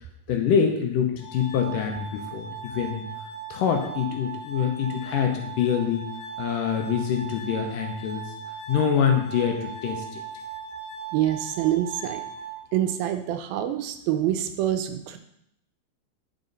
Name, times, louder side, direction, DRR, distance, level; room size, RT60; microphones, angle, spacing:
voice 1, 0.3-3.1 3.5-6.0 6.4-8.3 8.7-10.2, left 7 dB, 75° left, 3 dB, 2.4 m, -25 dB
Glass, 1.2-13.2, right 6 dB, 90° left, 2.6 m, -38 dB
voice 2, 11.1-12.2 12.7-15.2, right 12 dB, 85° right, 7 dB, 2.5 m, -26 dB
10.0 x 5.5 x 4.0 m, 0.76 s
omnidirectional pair, 4.1 m